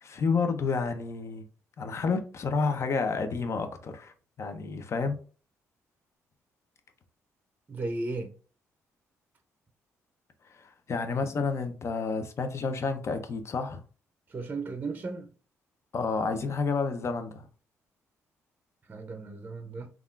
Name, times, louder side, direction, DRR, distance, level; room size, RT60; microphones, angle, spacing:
voice 1, 0.0-1.4 1.8-4.1 4.4-5.2 10.5-13.8 15.9-17.5, left 4 dB, 50° left, 0.5 m, -30 dB
voice 2, 7.7-8.3 14.3-15.3 18.9-19.9, right 3 dB, 30° right, 0.5 m, -35 dB
3.5 x 2.3 x 2.3 m
cardioid pair, 75°, 6 cm